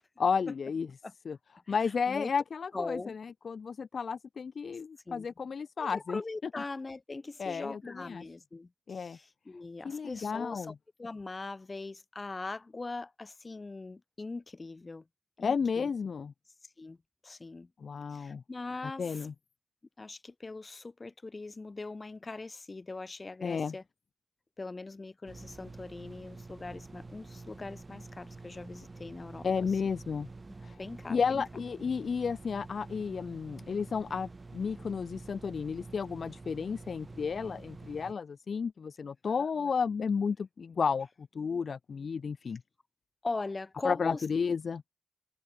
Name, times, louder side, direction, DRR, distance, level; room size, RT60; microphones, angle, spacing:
voice 1, 0.2-0.9 1.2-1.4 1.7-6.2 7.4-8.2 8.9-9.2 9.8-10.7 15.4-16.3 17.8-18.4 19.0-19.3 23.4-23.7 29.4-30.3 30.6-30.8 31.1-42.6 43.8-44.8, left 5 dB, 65° left, 0.9 m, -32 dB
voice 2, 1.7-2.3 2.7-3.1 5.1-5.3 5.8-10.7 11.0-15.0 15.4-15.9 16.8-17.0 17.2-17.7 18.1-19.3 20.0-23.8 24.6-29.5 30.8-31.2 42.4-42.5 43.2-44.2, left 3 dB, 30° left, 7.9 m, -41 dB
sound 1, 25.3-38.1, right 3 dB, 30° right, 1.8 m, -48 dB
open air
wide cardioid pair, 135°, 0 cm